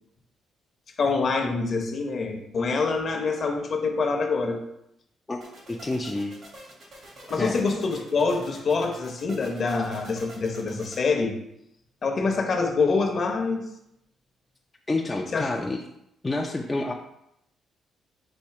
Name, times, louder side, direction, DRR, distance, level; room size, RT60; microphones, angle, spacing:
voice 1, 1.0-4.6 7.3-11.3 12.0-13.6 15.3-15.5, left 4 dB, 50° left, 3 dB, 0.8 m, -25 dB
sound 1, 5.4-11.0, right 1 dB, 55° right, 1.7 m, -46 dB
voice 2, 5.7-6.3 7.4-7.6 14.9-15.8 16.2-16.9, left 2 dB, 20° left, 0 dB, 0.5 m, -28 dB
4.3 x 2.6 x 4.7 m, 0.79 s
cardioid pair, 90°, 0 cm